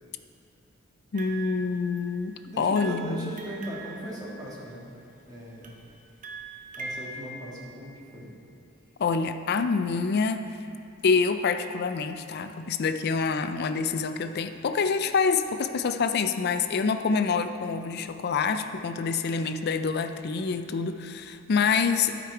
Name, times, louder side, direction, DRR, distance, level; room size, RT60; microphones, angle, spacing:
voice 1, 1.1-3.3 9.0-10.5 11.0-22.3, left 5 dB, 50° left, 9 dB, 0.4 m, -26 dB
sound 1, 1.1-2.3 2.7-5.0 5.6-7.1, right 3 dB, 40° right, 0.7 m, -42 dB
voice 2, 2.4-4.8 5.3-5.8 6.7-8.3, equal, 20° right, -5 dB, 1.6 m, -39 dB
11.5 x 5.2 x 4.6 m, 2.5 s
head